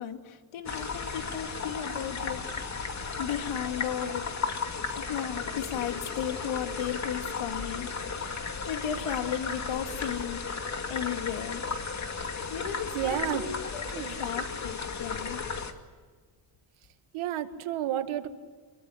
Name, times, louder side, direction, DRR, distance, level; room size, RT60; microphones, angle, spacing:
voice 1, 0.0-2.9 3.2-4.3 5.0-8.3 8.7-10.4 10.9-11.6 12.5-15.4, left 9 dB, 85° left, 6 dB, 2.6 m, -35 dB
sound 1, 0.7-15.7, left 5 dB, 35° left, 2.5 m, -35 dB
voice 2, 12.9-13.4 13.9-14.2 17.1-18.3, right 12 dB, 90° right, 8 dB, 2.1 m, -31 dB
28.5 x 22.5 x 8.0 m, 1.5 s
cardioid pair, 125°, 48 cm